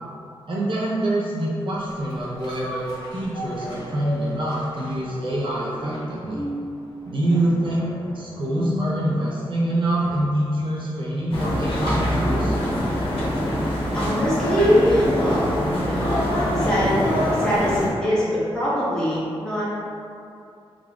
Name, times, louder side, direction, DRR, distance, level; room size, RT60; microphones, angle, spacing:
voice 1, 0.5-6.4 7.1-12.5, right 1 dB, 60° right, -6 dB, 0.6 m, -25 dB
sound 1, 1.9-10.5 10.9-11.0, equal, 50° left, 1.3 m, -35 dB
sound 2, 11.3-17.9, equal, 65° left, 0.8 m, -23 dB
voice 2, 13.9-16.1 16.6-19.7, equal, 10° left, -11 dB, 1.3 m, -23 dB
3.6 x 3.5 x 2.3 m, 2.5 s
wide cardioid pair, 120°, 10 cm